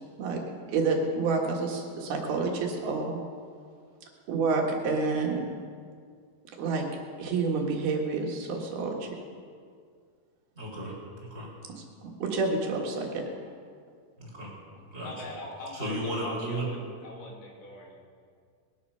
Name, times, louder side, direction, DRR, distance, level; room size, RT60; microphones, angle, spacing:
voice 1, 0.7-3.2 4.3-5.4 6.6-6.8 7.2-9.1 11.8-13.2, right 4 dB, 70° right, 0 dB, 3.6 m, -28 dB
voice 2, 10.6-11.5 14.2-14.5 14.9-15.1 15.7-16.7, right 1 dB, 15° right, -4 dB, 3.9 m, -34 dB
voice 3, 15.0-18.1, left 1 dB, 75° left, -2 dB, 4.7 m, -42 dB
21.0 x 11.5 x 5.7 m, 2.1 s
omnidirectional pair, 4.6 m